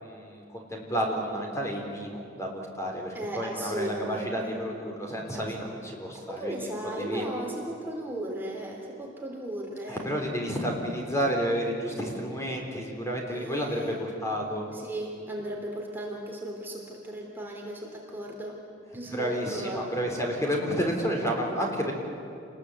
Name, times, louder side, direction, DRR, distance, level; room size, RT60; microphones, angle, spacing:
voice 1, 0.0-6.7 7.0-7.3 9.9-14.7 19.1-21.9, equal, 15° left, 1 dB, 4.0 m, -31 dB
voice 2, 3.1-4.4 5.3-5.5 6.4-10.1 13.3-14.0 14.7-18.6 18.9-20.0, right 1 dB, 10° right, -1 dB, 3.2 m, -36 dB
29.0 x 21.0 x 8.3 m, 2.5 s
head